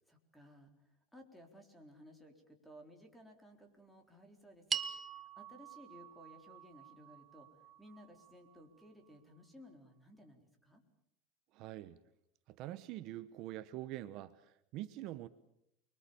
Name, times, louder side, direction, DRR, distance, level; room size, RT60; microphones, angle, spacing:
voice 1, 0.1-10.8, equal, ahead, 4 dB, 4.2 m, -58 dB
sound 1, 4.7-9.2, right 7 dB, 25° right, 1.3 m, -44 dB
voice 2, 11.5-12.0 12.5-15.3, right 14 dB, 50° right, 13 dB, 1.1 m, -45 dB
29.5 x 23.0 x 7.1 m, 0.76 s
supercardioid pair, 145°, 0 cm